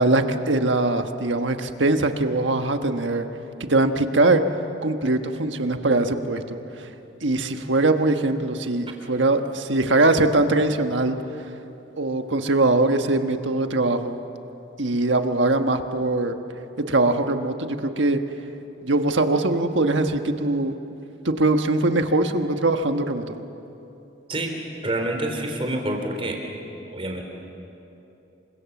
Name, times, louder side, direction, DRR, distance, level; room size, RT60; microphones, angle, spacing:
voice 1, 0.0-3.3 3.6-4.5 4.8-6.9 7.2-11.2 12.0-14.2 14.8-16.4 16.8-18.2 18.8-20.8 21.2-23.4, right 2 dB, 90° right, 6 dB, 1.4 m, -22 dB
voice 2, 24.8-26.4 26.9-27.2, right 1 dB, 30° right, 3 dB, 3.7 m, -27 dB
29.0 x 25.0 x 7.2 m, 2.9 s
head